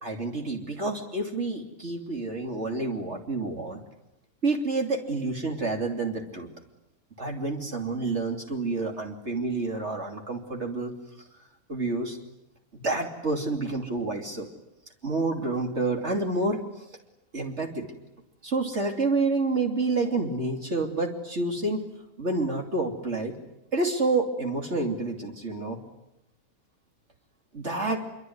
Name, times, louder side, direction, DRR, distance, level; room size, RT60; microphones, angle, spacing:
voice 1, 0.0-3.8 4.4-6.5 7.2-10.9 11.7-12.2 12.7-14.5 15.0-16.6 17.3-17.9 18.4-21.8 22.2-23.4 23.7-25.8 27.5-28.0, right 3 dB, 50° right, 3 dB, 3.3 m, -28 dB
25.5 x 24.0 x 9.6 m, 0.87 s
omnidirectional pair, 1.5 m